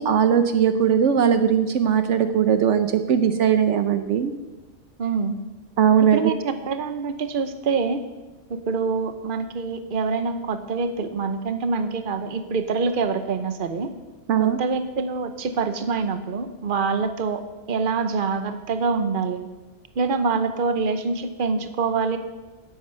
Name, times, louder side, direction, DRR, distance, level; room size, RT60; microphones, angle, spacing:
voice 1, 0.0-4.3 5.8-6.3 14.3-14.6, right 8 dB, 70° right, 9 dB, 1.0 m, -19 dB
voice 2, 5.0-5.4 6.1-8.0 8.5-13.9 14.4-17.4 17.7-19.5 20.0-22.2, right 4 dB, 45° right, 9 dB, 1.0 m, -25 dB
11.0 x 8.9 x 8.1 m, 1.2 s
omnidirectional pair, 1.3 m